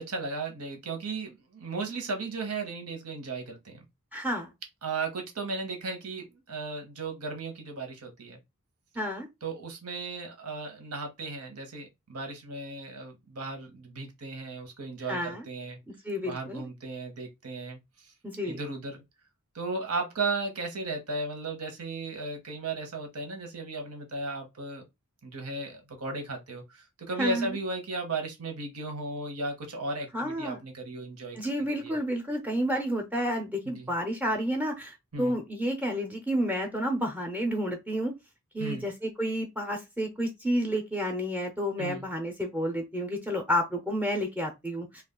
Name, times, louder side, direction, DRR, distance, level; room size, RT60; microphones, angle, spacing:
voice 1, 0.0-3.8 4.8-8.4 9.4-15.8 16.2-17.8 18.4-19.0 19.5-24.8 25.2-31.4 31.7-31.9 33.6-33.9 35.1-35.4 38.6-38.9 41.8-42.1, right 3 dB, 85° right, 1.0 m, -35 dB
voice 2, 4.1-4.5 9.0-9.3 15.1-15.4 16.0-16.6 18.2-18.6 27.2-27.5 30.1-30.6 31.4-38.1 38.5-45.0, equal, 5° right, 0.5 m, -30 dB
2.4 x 2.3 x 3.6 m
head